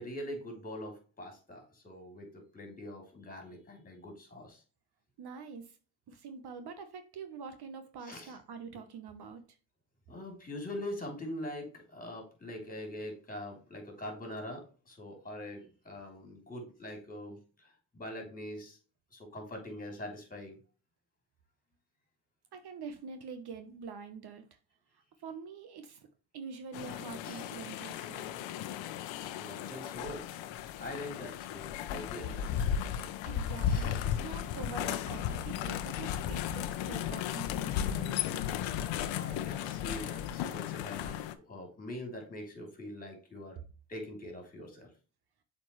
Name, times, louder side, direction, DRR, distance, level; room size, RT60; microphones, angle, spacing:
voice 1, 0.0-4.6 8.0-8.3 10.1-18.8 19.1-20.6 27.2-27.5 29.4-30.5 30.8-32.8 33.6-34.0 38.9-43.6 43.9-44.9, left 1 dB, 20° left, 2 dB, 3.3 m, -43 dB
voice 2, 5.2-5.8 6.1-9.6 22.5-24.5 24.9-26.1 26.3-28.3 33.2-38.5, right 5 dB, 55° right, 8 dB, 1.1 m, -45 dB
sound 1, 26.7-41.3, left 9 dB, 70° left, 0.9 m, -35 dB
7.2 x 4.5 x 3.2 m, 0.36 s
cardioid pair, 100°, 48 cm